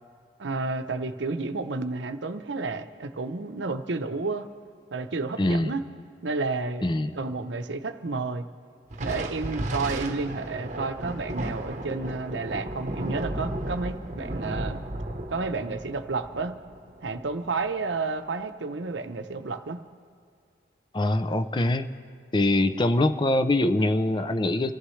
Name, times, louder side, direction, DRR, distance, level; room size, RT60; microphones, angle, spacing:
voice 1, 0.4-4.5 4.9-5.8 6.2-6.9 7.2-8.4 9.0-14.8 15.3-16.5 17.0-19.8, right 3 dB, 85° right, 8 dB, 0.8 m, -31 dB
voice 2, 5.4-5.7 6.8-7.1 20.9-21.9 22.3-24.7, left 1 dB, 25° left, 10 dB, 0.5 m, -23 dB
Thunder, 8.9-17.7, right 1 dB, 40° right, 0.9 m, -34 dB
26.5 x 14.5 x 3.2 m, 2.3 s
head